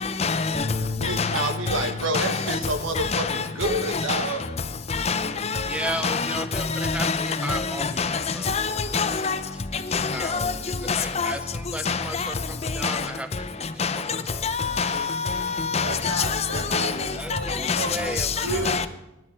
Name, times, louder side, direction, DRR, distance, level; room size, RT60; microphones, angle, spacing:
voice 1, 0.2-0.6 1.2-1.4 2.1-2.6 3.0-3.2 3.9-4.2 5.0-5.3 6.0-6.4 6.8-7.6 8.0-8.1 8.5-9.4 9.9-10.1 10.4-10.5 10.9-11.3 11.9-12.3 12.8-13.0 13.8-13.9 14.4-16.4 16.7-16.9 17.7-17.9 18.7-18.9, left 5 dB, 30° left, 0.6 m, -25 dB
Bass guitar, 0.5-6.8, left 4 dB, 15° left, 1.6 m, -37 dB
voice 2, 1.0-4.5 15.8-17.5 17.7-18.8, right 2 dB, 85° right, 1.5 m, -30 dB
voice 3, 5.7-8.0 8.3-8.5 10.1-10.5 10.8-13.3 13.6-13.7 17.2-18.5, right 1 dB, 5° right, 0.6 m, -34 dB
10.0 x 8.5 x 9.9 m
head